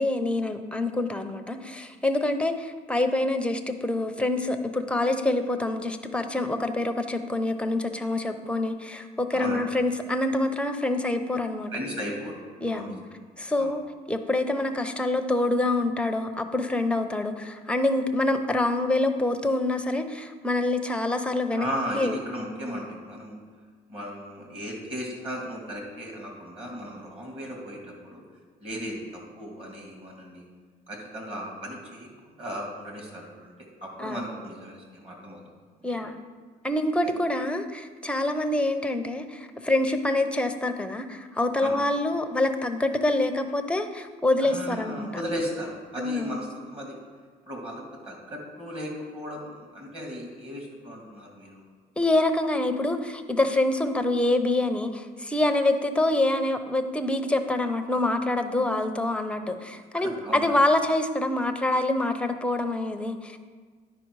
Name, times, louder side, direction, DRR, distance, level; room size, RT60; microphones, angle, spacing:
voice 1, 0.0-11.7 12.6-13.0 13.4-13.8 14.1-21.7 21.9-22.2 34.0-34.2 35.8-36.2 36.6-45.2 46.0-46.4 52.0-63.4, left 2 dB, 5° left, 7 dB, 0.6 m, -26 dB
voice 2, 11.7-12.4 12.7-12.9 13.6-13.7 21.5-23.4 23.9-28.2 28.6-30.5 30.9-33.5 33.8-35.4 35.9-36.0 37.0-37.1 41.6-41.8 44.4-47.0 47.5-51.6 60.0-60.5, equal, 35° right, 0 dB, 2.4 m, -36 dB
9.9 x 5.1 x 4.7 m, 1.5 s
cardioid pair, 110°, 17 cm